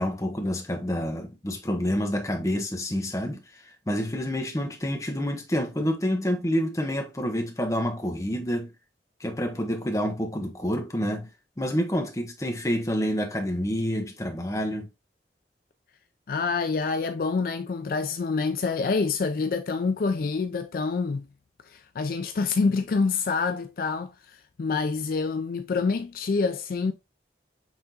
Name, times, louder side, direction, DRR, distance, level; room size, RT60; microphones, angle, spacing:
voice 1, 0.0-3.4 3.9-8.7 9.2-11.3 11.6-14.9, equal, 20° left, 0.8 m, -28 dB
voice 2, 16.3-21.3 21.7-26.9, left 4 dB, 55° left, 0.3 m, -27 dB
5.5 x 3.4 x 2.8 m
head